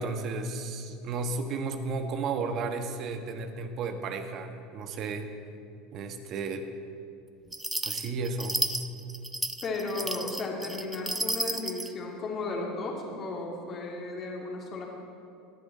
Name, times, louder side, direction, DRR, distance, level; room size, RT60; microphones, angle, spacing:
voice 1, 0.0-5.3 5.9-6.7 7.8-8.6, right 4 dB, 50° right, 7 dB, 1.3 m, -33 dB
sound 1, 7.5-11.9, right 1 dB, 10° right, 0.6 m, -32 dB
voice 2, 9.6-14.9, left 3 dB, 40° left, 0 dB, 2.6 m, -34 dB
18.0 x 10.0 x 4.2 m, 2.5 s
hypercardioid pair, 80°, 0 cm